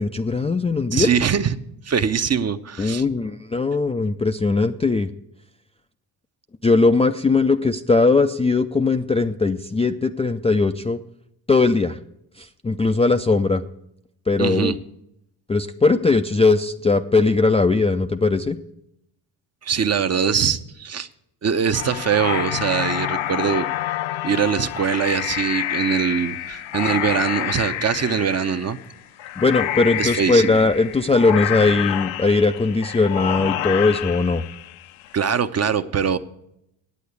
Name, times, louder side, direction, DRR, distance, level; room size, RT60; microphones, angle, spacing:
voice 1, 0.0-1.1 2.8-5.1 6.6-11.0 11.5-12.0 12.4-13.6 14.3-14.7 15.5-18.6 29.4-34.4, left 3 dB, 15° left, 5 dB, 0.4 m, -19 dB
voice 2, 0.9-1.5 1.8-3.0 14.4-14.7 19.6-21.1 21.4-23.7 24.2-28.8 30.0-30.6 35.1-36.2, right 7 dB, 30° right, 11 dB, 0.7 m, -22 dB
sound 1, 21.7-35.1, left 13 dB, 75° left, 0.7 m, -28 dB
8.5 x 8.4 x 8.2 m, 0.79 s
supercardioid pair, 65°, 49 cm